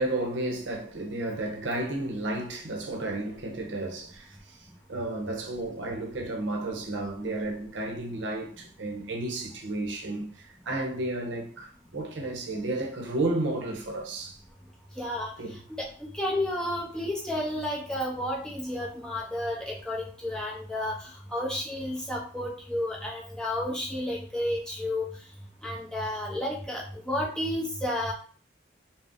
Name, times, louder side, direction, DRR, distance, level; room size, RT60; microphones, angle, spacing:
voice 1, 0.0-4.6 4.9-14.4 15.4-15.5, right 2 dB, 75° right, 0.6 m, -32 dB
voice 2, 15.0-15.3 15.7-20.9 21.3-25.1 25.6-28.1, left 1 dB, 5° left, 0.5 m, -31 dB
2.5 x 2.0 x 3.6 m
head